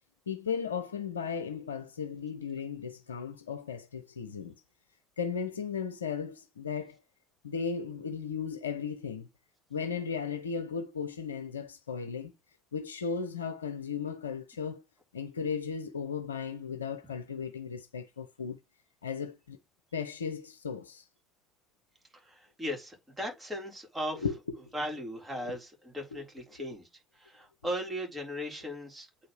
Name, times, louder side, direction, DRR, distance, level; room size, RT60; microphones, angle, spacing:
voice 1, 0.3-4.5 5.2-7.0 7.4-9.3 9.7-12.3 12.7-14.8 15.1-18.6 19.0-19.6 19.9-21.1 24.2-24.6 25.4-25.6 26.1-26.2, left 6 dB, 80° left, 0.4 m, -36 dB
voice 2, 22.3-24.3 24.7-26.9 27.2-29.1, equal, 15° right, 3.9 m, -37 dB
8.5 x 4.4 x 3.2 m
figure-of-eight pair, 50°, 0 cm